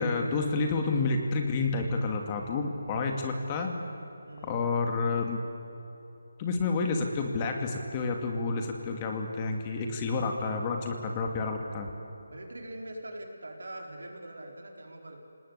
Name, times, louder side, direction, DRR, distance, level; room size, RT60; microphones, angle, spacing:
voice 1, 0.0-3.8 4.4-5.4 6.4-11.9, left 3 dB, 25° left, 3 dB, 2.4 m, -29 dB
voice 2, 4.3-4.7 12.3-15.2, right 1 dB, 75° right, 2 dB, 4.5 m, -43 dB
28.0 x 19.0 x 8.4 m, 2.9 s
figure-of-eight pair, 160°, 0 cm